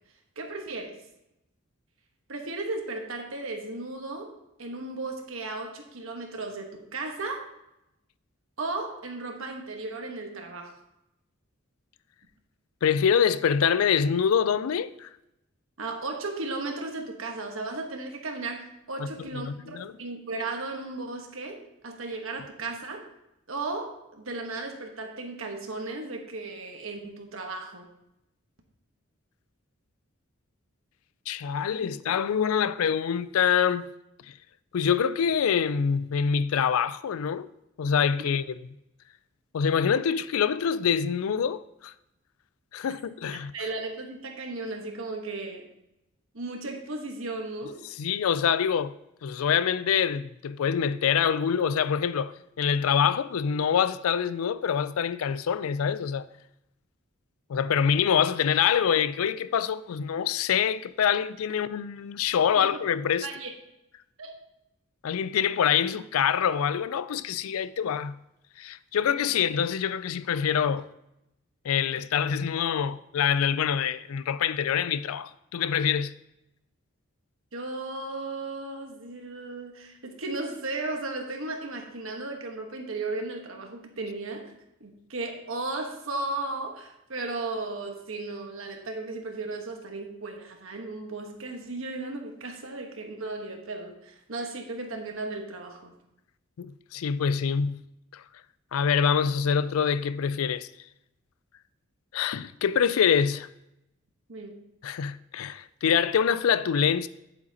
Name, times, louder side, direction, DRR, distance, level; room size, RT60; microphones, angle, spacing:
voice 1, 0.4-1.0 2.3-4.3 4.6-7.5 8.6-10.8 15.8-23.0 23.5-27.9 43.3-45.7 46.3-47.8 62.6-62.7 63.2-63.5 64.2-64.4 77.5-84.5 84.8-95.9 104.3-104.6, right 3 dB, 75° right, 1.2 m, -35 dB
voice 2, 12.8-15.1 19.0-19.9 31.3-33.9 34.3-34.4 34.7-37.5 37.8-38.6 39.5-41.9 42.7-43.5 48.0-48.9 49.2-52.3 52.6-56.3 57.5-63.3 65.0-68.2 68.6-70.8 71.6-76.1 96.6-97.8 98.1-98.2 98.7-100.7 102.1-103.5 104.8-107.1, left 7 dB, 85° left, 0.4 m, -25 dB
8.8 x 7.9 x 2.8 m
head